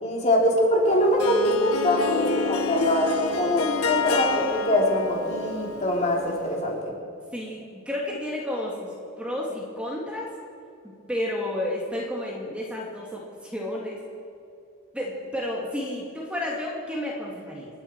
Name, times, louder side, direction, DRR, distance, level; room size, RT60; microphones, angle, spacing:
voice 1, 0.0-6.9, left 1 dB, 35° left, -2 dB, 3.2 m, -23 dB
Harp, 0.8-6.6, left 5 dB, 90° left, 1.0 m, -30 dB
voice 2, 7.3-10.3 10.8-14.0 14.9-17.7, left 1 dB, 5° right, -3 dB, 2.0 m, -31 dB
29.5 x 9.9 x 4.5 m, 2.6 s
head